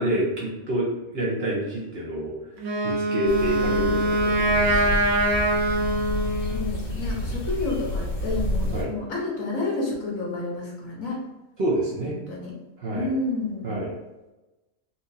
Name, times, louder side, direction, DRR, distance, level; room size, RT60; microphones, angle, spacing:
voice 1, 0.0-2.3 2.8-4.9 8.7-8.9 11.6-12.2 12.8-13.1 13.6-13.9, right 1 dB, 50° right, -5 dB, 0.9 m, -27 dB
Wind instrument woodwind instrument, 2.6-6.7, right 1 dB, 80° right, 1.2 m, -23 dB
sound 1, 3.3-8.8, equal, 85° left, 1.7 m, -29 dB
voice 2, 6.4-11.2 12.0-12.6 12.9-13.8, left 3 dB, 70° left, -4 dB, 1.5 m, -30 dB
4.3 x 2.5 x 2.7 m, 1.0 s
omnidirectional pair, 1.5 m